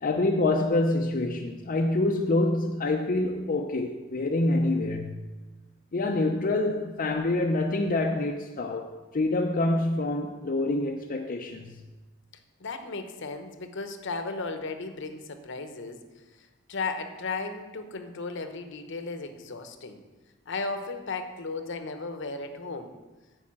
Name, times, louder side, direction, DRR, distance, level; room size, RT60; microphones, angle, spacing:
voice 1, 0.0-5.2 5.9-11.8, left 2 dB, 40° left, 2 dB, 0.5 m, -26 dB
voice 2, 12.6-16.0 16.4-20.0 20.5-22.9, left 3 dB, 60° left, 7 dB, 0.9 m, -35 dB
8.5 x 5.0 x 7.5 m, 1.2 s
head